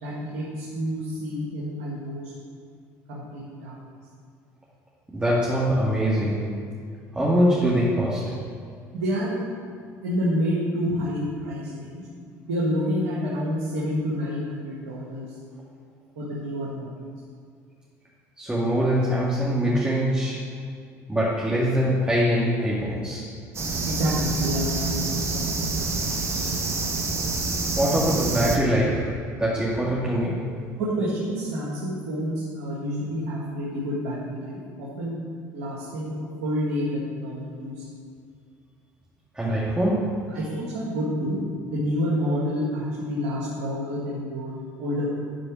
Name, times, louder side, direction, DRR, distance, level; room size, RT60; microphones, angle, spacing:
voice 1, 0.0-2.3 3.1-3.8 8.9-9.4 10.0-12.0 12.5-15.3 16.2-16.9 23.9-25.9 30.8-35.2 35.5-36.1 36.4-37.8 40.3-41.4 41.7-45.1, equal, 85° right, -6 dB, 1.8 m, -28 dB
voice 2, 5.1-6.5 7.1-8.3 18.4-20.5 21.1-23.2 26.3-26.4 27.7-30.5 39.3-40.3, equal, 10° right, -7 dB, 2.2 m, -23 dB
sound 1, 23.5-28.6, right 3 dB, 35° right, 1.5 m, -27 dB
11.5 x 4.9 x 6.3 m, 2.2 s
hypercardioid pair, 75°, 8 cm